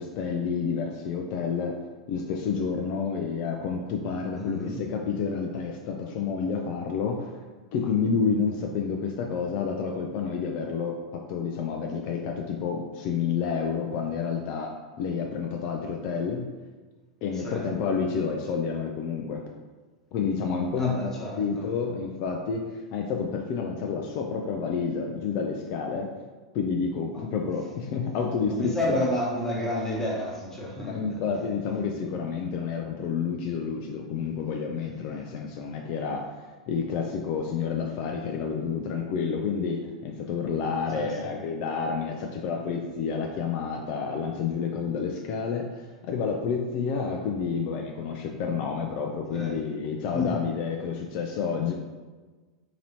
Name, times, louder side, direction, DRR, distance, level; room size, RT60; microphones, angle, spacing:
voice 1, 0.0-1.7 2.1-7.3 7.7-16.5 17.2-19.4 20.1-26.1 26.5-29.0 30.8-36.4 36.7-51.7, left 5 dB, 45° left, 1 dB, 0.4 m, -29 dB
voice 2, 4.3-4.8 17.3-17.6 20.7-21.7 27.1-27.2 28.4-31.2 40.9-41.4 49.3-49.6 50.1-50.4, left 1 dB, 10° left, -5 dB, 1.2 m, -31 dB
3.9 x 2.7 x 2.9 m, 1.3 s
hypercardioid pair, 95°, 3 cm